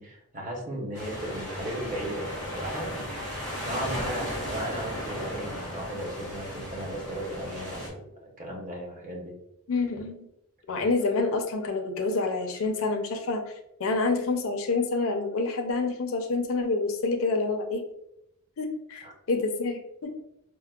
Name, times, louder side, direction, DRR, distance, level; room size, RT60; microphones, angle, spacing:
voice 1, 0.0-3.1 3.6-8.0 8.4-9.3 19.0-19.1, right 1 dB, 35° right, -1 dB, 0.7 m, -36 dB
sound 1, 0.9-7.9, equal, 85° right, 1.2 m, -35 dB
voice 2, 9.7-10.3 10.7-13.5 13.8-17.8 18.6-20.1, left 3 dB, 65° left, 4 dB, 0.5 m, -28 dB
4.5 x 2.1 x 2.3 m, 0.81 s
head